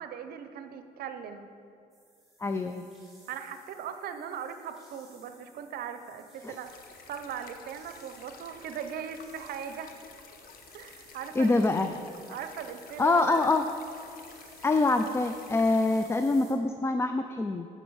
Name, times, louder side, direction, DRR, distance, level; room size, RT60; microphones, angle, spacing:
voice 1, 0.0-1.5 3.3-9.9 10.7-12.0 12.3-13.5, right 8 dB, 65° right, 9 dB, 0.7 m, -39 dB
sound 1, 1.9-16.5, right 1 dB, ahead, 2.3 m, -57 dB
voice 2, 2.4-2.9 6.4-6.6 11.4-11.9 13.0-13.6 14.6-17.7, left 3 dB, 15° left, 7 dB, 0.3 m, -25 dB
sound 2, 6.6-16.1, left 5 dB, 60° left, 0.8 m, -52 dB
8.4 x 7.0 x 4.8 m, 2.4 s
cardioid pair, 110°, 17 cm